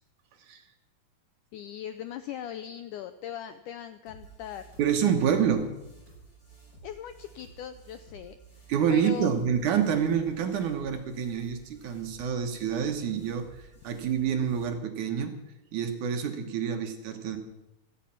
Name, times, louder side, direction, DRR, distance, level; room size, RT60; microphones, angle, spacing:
voice 1, 1.5-4.6 6.8-9.3, left 10 dB, 85° left, 10 dB, 1.8 m, -39 dB
sound 1, 4.1-14.6, right 3 dB, 25° left, 6.2 m, -53 dB
voice 2, 4.8-5.7 8.7-15.4 15.7-17.4, right 8 dB, 65° right, 5 dB, 2.4 m, -27 dB
16.0 x 14.0 x 5.8 m, 0.91 s
omnidirectional pair, 4.3 m